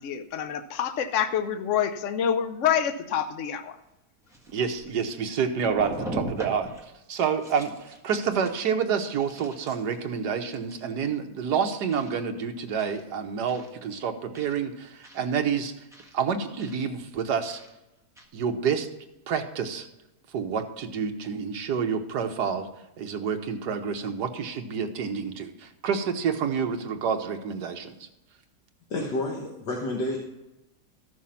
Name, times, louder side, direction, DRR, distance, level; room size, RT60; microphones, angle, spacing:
voice 1, 0.0-3.8, left 9 dB, 55° left, 9 dB, 1.0 m, -27 dB
sound 1, 3.7-3.8 4.3-5.2 5.6-6.9 7.3-8.0 8.3-8.6 9.0-10.0 10.5-10.8 11.9-12.1 12.8-13.0 13.5-13.7 14.3-14.6 15.0-15.3 15.9-16.1 16.6-16.8 17.5-17.7 18.2-18.3, right 1 dB, ahead, 1.4 m, -39 dB
voice 2, 4.5-15.7 16.1-17.6 18.3-18.9 19.3-19.9 20.3-22.7 23.0-28.1, right 6 dB, 75° right, 5 dB, 1.5 m, -28 dB
voice 3, 28.9-30.2, left 2 dB, 80° left, -1 dB, 1.9 m, -29 dB
13.5 x 6.4 x 5.6 m, 0.95 s
omnidirectional pair, 1.8 m